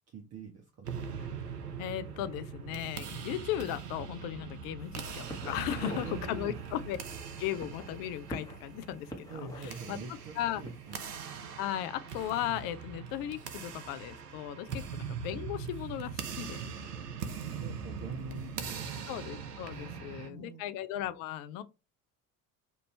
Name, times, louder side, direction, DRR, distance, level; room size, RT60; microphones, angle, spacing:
voice 1, 0.1-1.3 5.9-6.6 9.3-11.0 14.6-14.8 17.5-19.1 19.7-20.6, right 4 dB, 35° right, 0.8 m, -45 dB
sound 1, 0.8-20.3, right 6 dB, 90° right, 0.6 m, -41 dB
voice 2, 1.8-7.0 7.4-10.6 11.6-16.7 19.1-21.6, left 12 dB, 50° left, 0.4 m, -37 dB
sound 2, 4.8-5.0 5.3-6.1 6.5-6.7 7.5-8.7 9.1-9.9 10.5-11.0, equal, 10° left, 1.0 m, -44 dB
3.0 x 2.6 x 3.1 m
figure-of-eight pair, 60°, 46 cm